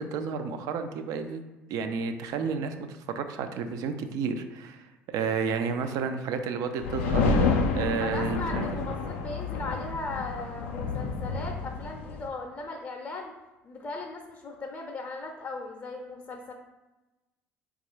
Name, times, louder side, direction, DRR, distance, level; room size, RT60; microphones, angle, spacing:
voice 1, 0.0-1.4 1.7-8.7, right 5 dB, 60° right, 8 dB, 0.4 m, -31 dB
sound 1, 6.8-12.3, left 4 dB, 80° left, 0.4 m, -28 dB
voice 2, 8.0-13.3 13.6-16.5, left 3 dB, 35° left, 1 dB, 0.6 m, -38 dB
4.4 x 2.4 x 3.1 m, 1.1 s
hypercardioid pair, 60°, 7 cm